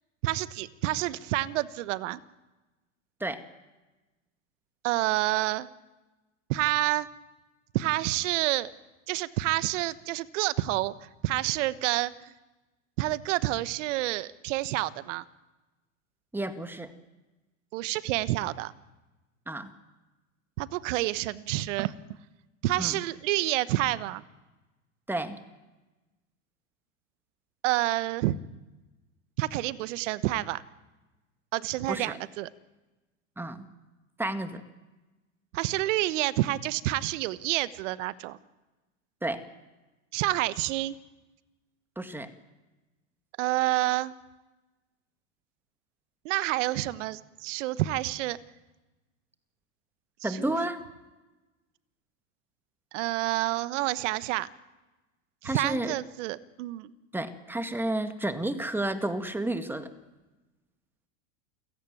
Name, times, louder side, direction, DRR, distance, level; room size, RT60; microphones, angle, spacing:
voice 1, 0.2-2.2 4.8-5.7 6.5-7.1 7.7-8.7 9.1-10.9 11.2-12.3 13.0-15.2 17.7-18.7 20.6-21.9 22.6-24.2 27.6-28.4 29.4-30.6 31.5-32.5 35.5-38.4 40.1-41.0 43.4-44.1 46.2-48.4 50.2-50.6 52.9-54.5 55.4-56.9, right 16 dB, 65° right, 16 dB, 1.2 m, -28 dB
voice 2, 16.3-16.9 19.5-19.7 22.8-23.0 25.1-25.4 31.9-32.2 33.4-33.7 34.2-34.6 39.2-39.4 42.0-42.3 50.2-50.8 55.4-55.9 57.1-59.9, right 1 dB, 5° right, 9 dB, 1.9 m, -31 dB
29.0 x 16.5 x 9.2 m, 1.1 s
hypercardioid pair, 105°, 40 cm